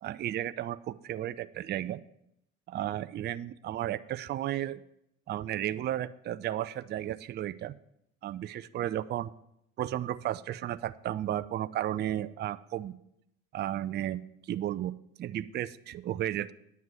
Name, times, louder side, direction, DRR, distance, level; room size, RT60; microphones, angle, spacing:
voice 1, 0.0-2.0 2.7-4.8 5.3-7.7 8.2-9.3 9.8-12.9 13.5-14.2 14.5-16.5, right 12 dB, 25° right, 17 dB, 0.4 m, -33 dB
9.3 x 7.4 x 6.0 m, 0.79 s
figure-of-eight pair, 55°, 40 cm